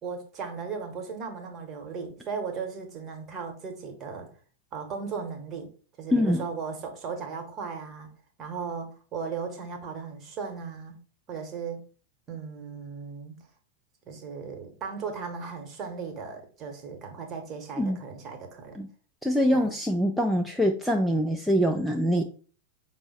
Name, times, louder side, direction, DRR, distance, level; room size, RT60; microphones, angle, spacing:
voice 1, 0.0-4.3 4.7-5.7 6.0-8.1 8.4-11.0 11.3-11.8 12.3-13.4 14.1-18.8 19.5-19.7, right 5 dB, 30° right, 1.1 m, -36 dB
voice 2, 6.1-6.4 17.8-18.0 18.8-18.9 19.2-22.2, equal, ahead, 0.4 m, -24 dB
5.4 x 2.1 x 4.0 m
figure-of-eight pair, 90°, 0 cm